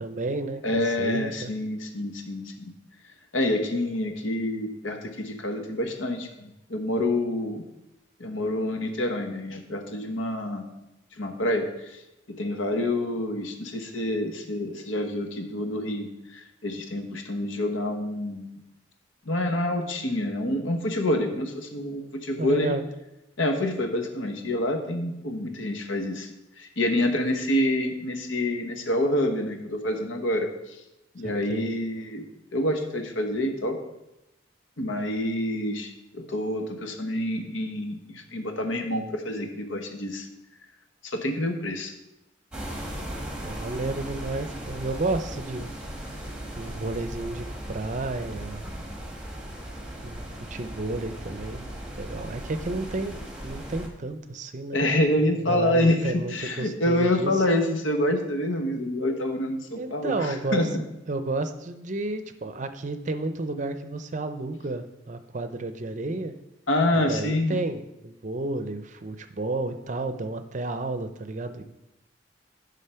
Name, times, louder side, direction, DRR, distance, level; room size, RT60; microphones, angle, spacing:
voice 1, 0.0-1.5 22.4-22.9 31.2-31.7 43.4-45.7 46.6-48.7 50.0-51.7 52.0-53.2 53.4-54.9 55.2-57.4 59.8-60.7 61.1-66.3 66.9-71.6, right 2 dB, 40° right, 9 dB, 0.6 m, -32 dB
voice 2, 0.6-2.7 3.3-7.6 8.2-10.7 11.2-12.0 12.3-18.6 19.3-22.7 23.4-26.3 26.6-30.8 31.1-32.2 32.5-33.8 34.8-40.3 41.0-41.9 54.7-56.0 56.3-60.7 66.7-67.6, left 1 dB, 85° left, 5 dB, 1.2 m, -27 dB
sound 1, 42.5-53.9, right 1 dB, 5° right, 1.3 m, -37 dB
11.0 x 3.8 x 5.7 m, 0.93 s
head